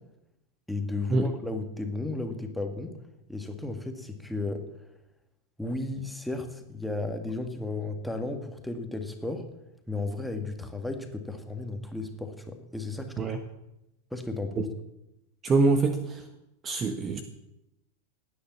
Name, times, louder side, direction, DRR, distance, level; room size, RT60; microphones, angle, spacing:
voice 1, 0.7-2.9 3.3-4.6 5.6-9.5 9.9-13.2 14.1-14.7, left 2 dB, ahead, 5 dB, 2.1 m, -34 dB
voice 2, 15.4-16.3 16.6-17.2, right 3 dB, 25° right, 8 dB, 1.4 m, -25 dB
18.5 x 9.7 x 7.5 m, 0.91 s
figure-of-eight pair, 90°, 0 cm